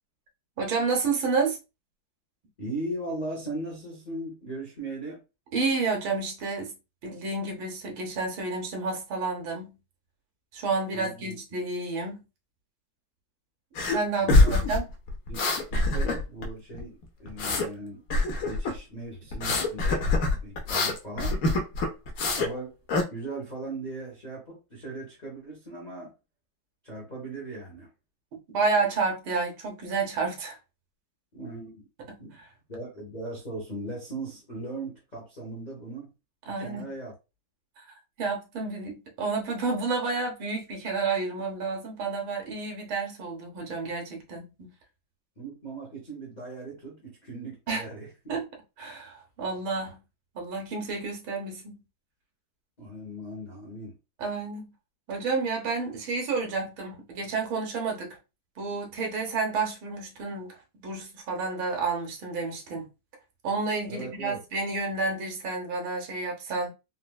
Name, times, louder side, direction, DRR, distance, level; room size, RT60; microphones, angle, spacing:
voice 1, 0.6-1.6 5.5-6.7 7.0-9.8 10.5-12.2 13.9-14.8 28.5-30.6 32.1-32.2 36.5-36.9 38.2-44.7 47.7-47.8 48.3-48.4 48.8-50.0 50.3-51.8 54.2-54.7 55.1-58.2 58.6-62.9 63.4-66.7, right 4 dB, 75° right, 1.7 m, -30 dB
voice 2, 2.6-5.2 10.9-11.4 14.2-14.6 15.3-18.0 18.4-20.1 20.4-21.4 22.4-22.7 23.1-26.1 26.8-27.9 31.3-31.9 32.2-32.4 32.7-36.1 36.4-37.1 45.4-48.4 52.8-54.0 63.9-64.4, right 2 dB, 45° left, 0.5 m, -38 dB
sound 1, 13.8-14.0 14.3-16.5 16.7-17.7 18.1-18.8 19.3-22.5 22.9-23.0, left 2 dB, 65° left, 0.9 m, -24 dB
4.2 x 2.0 x 2.2 m
omnidirectional pair, 2.3 m